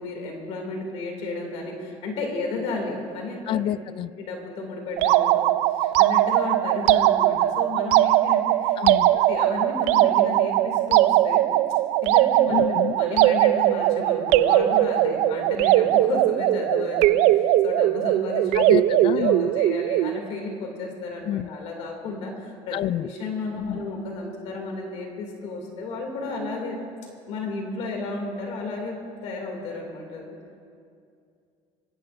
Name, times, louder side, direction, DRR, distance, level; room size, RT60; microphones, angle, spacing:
voice 1, 0.0-3.6 4.2-11.4 12.0-26.8 27.3-30.4, left 3 dB, 70° left, 1 dB, 2.5 m, -33 dB
voice 2, 3.5-4.1 8.8-9.2 12.5-13.0 18.5-19.5 21.3-21.5 22.7-23.1 23.7-23.8, left 12 dB, 50° left, 19 dB, 0.3 m, -28 dB
sound 1, 5.0-20.2, right 14 dB, 75° right, 0.4 m, -20 dB
23.5 x 15.5 x 2.5 m, 2.4 s
cardioid pair, 120°, 12 cm